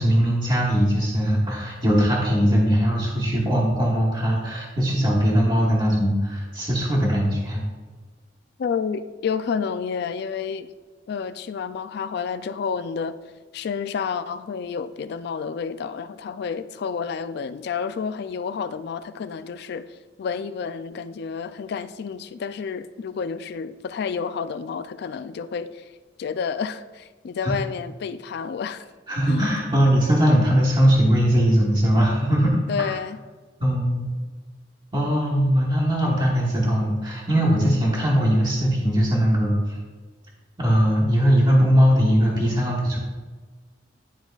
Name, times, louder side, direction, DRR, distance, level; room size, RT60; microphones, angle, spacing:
voice 1, 0.0-7.6 27.4-27.5 29.1-32.9 33.6-34.1 34.9-39.8 40.6-43.0, equal, 25° right, 1.2 m, -20 dB
voice 2, 8.6-10.7 11.1-13.1 13.5-19.9 20.2-25.8 26.2-28.8 29.3-29.5 32.7-33.2, left 6 dB, 60° left, 0.3 m, -30 dB
11.0 x 3.9 x 2.3 m
head